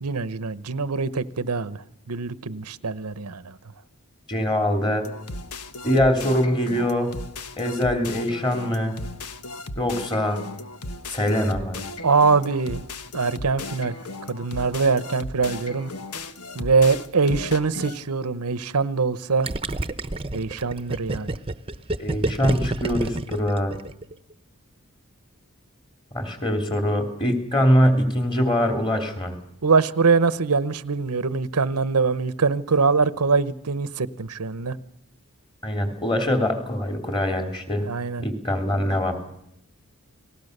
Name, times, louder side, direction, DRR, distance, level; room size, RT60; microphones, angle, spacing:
voice 1, 0.0-3.6 12.0-12.8 13.1-13.9 14.3-15.9 16.5-19.5 20.3-21.3 29.6-34.8 37.8-38.2, right 4 dB, 90° right, 0.9 m, -23 dB
voice 2, 4.3-5.1 5.8-7.1 7.6-8.9 9.7-10.4 11.1-11.8 22.0-23.7 26.1-29.3 35.6-37.8 38.2-39.2, equal, 20° left, 3.2 m, -23 dB
sound 1, 5.0-18.0, left 2 dB, 90° left, 1.3 m, -36 dB
Gurgling, 19.4-24.1, right 2 dB, 25° right, 0.9 m, -28 dB
30.0 x 19.5 x 6.7 m
head